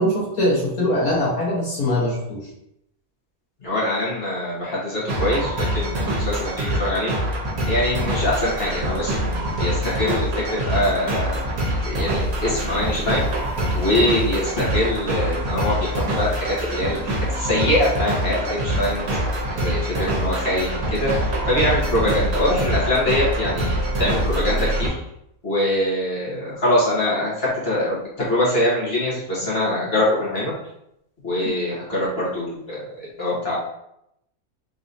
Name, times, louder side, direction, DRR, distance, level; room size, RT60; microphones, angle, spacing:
voice 1, 0.0-2.4, left 1 dB, 80° left, -5 dB, 1.7 m, -22 dB
voice 2, 3.6-7.1 7.6-11.4 11.8-13.2 13.7-19.1 19.4-24.9 25.4-30.5 31.2-32.8 33.2-33.6, left 1 dB, 45° left, -7 dB, 1.5 m, -23 dB
sound 1, 5.1-24.9, right 1 dB, 70° right, 1.4 m, -25 dB
3.9 x 3.0 x 2.6 m, 0.80 s
omnidirectional pair, 1.6 m